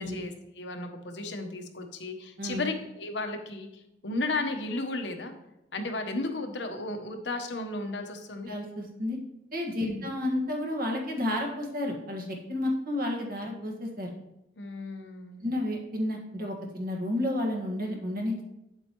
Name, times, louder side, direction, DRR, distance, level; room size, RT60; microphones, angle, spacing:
voice 1, 0.0-3.7 4.0-5.3 5.7-8.5 9.8-10.0 14.6-15.5, left 2 dB, 75° left, 5 dB, 1.0 m, -34 dB
voice 2, 8.4-9.2 9.5-14.1 15.4-18.4, left 1 dB, 55° right, 1 dB, 1.7 m, -31 dB
8.4 x 7.9 x 3.0 m, 0.89 s
head